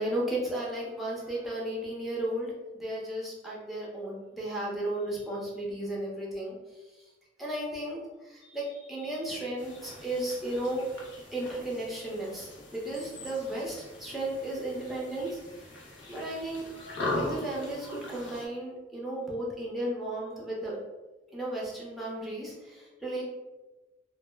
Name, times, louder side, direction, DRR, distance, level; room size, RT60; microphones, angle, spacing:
voice 1, 0.0-6.6 7.4-15.4 16.1-16.7 17.1-20.8 21.3-23.2, right 1 dB, ahead, -5 dB, 0.5 m, -34 dB
sound 1, 9.6-18.5, left 2 dB, 85° left, 0.6 m, -40 dB
2.1 x 2.0 x 3.2 m, 1.1 s
head